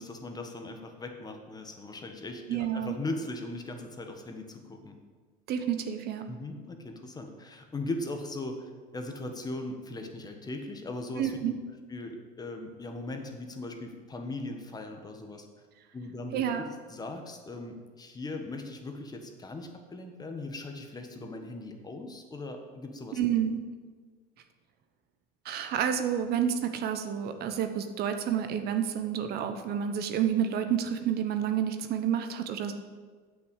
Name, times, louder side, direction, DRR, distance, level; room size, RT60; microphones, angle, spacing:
voice 1, 0.0-5.0 6.3-11.3 11.9-15.4 15.9-16.4 16.9-23.2, left 2 dB, 20° left, 5 dB, 1.4 m, -39 dB
voice 2, 2.5-2.9 5.5-6.2 11.2-11.5 16.3-16.6 23.2-23.7 25.4-32.7, right 9 dB, 55° right, 8 dB, 1.0 m, -29 dB
8.1 x 6.1 x 8.1 m, 1.5 s
supercardioid pair, 110°, 20 cm